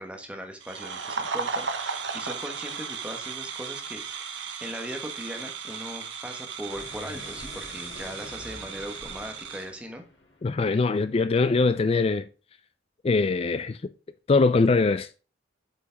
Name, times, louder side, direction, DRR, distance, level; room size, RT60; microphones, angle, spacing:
voice 1, 0.0-10.0, equal, 5° right, 1.3 m, -39 dB
sound 1, 0.6-9.7, right 5 dB, 70° right, 1.1 m, -35 dB
sound 2, 6.6-11.0, left 2 dB, 65° left, 3.0 m, -46 dB
voice 2, 10.4-12.3 13.0-13.8 14.3-15.2, left 3 dB, 30° left, 0.3 m, -22 dB
8.3 x 5.3 x 3.4 m
head